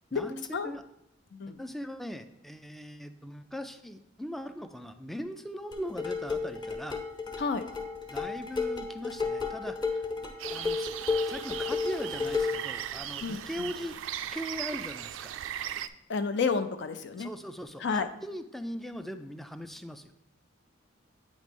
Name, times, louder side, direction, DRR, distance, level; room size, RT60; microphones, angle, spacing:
voice 1, 0.1-0.8 1.5-7.0 8.1-10.1 10.5-10.9 11.3-14.0 14.3-15.3 17.1-20.1, equal, ahead, 9 dB, 0.3 m, -40 dB
sound 1, 5.7-12.7, left 4 dB, 25° left, 0.9 m, -32 dB
sound 2, 10.4-15.9, right 10 dB, 85° right, 0.3 m, -38 dB
voice 2, 13.2-13.7 16.1-17.3 17.8-18.1, left 5 dB, 65° left, 9 dB, 0.5 m, -30 dB
9.0 x 3.1 x 5.2 m, 0.80 s
head